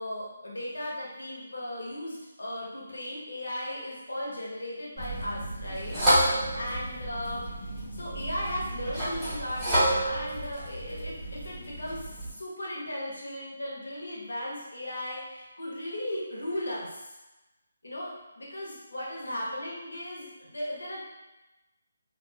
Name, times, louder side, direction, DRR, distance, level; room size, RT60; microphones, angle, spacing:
voice 1, 0.0-7.4 7.9-17.1 17.8-21.0, left 1 dB, 85° left, -5 dB, 1.0 m, -36 dB
sound 1, 5.0-12.3, right 1 dB, 10° right, 1.1 m, -30 dB
3.0 x 2.2 x 2.2 m, 1.0 s
figure-of-eight pair, 155°, 0 cm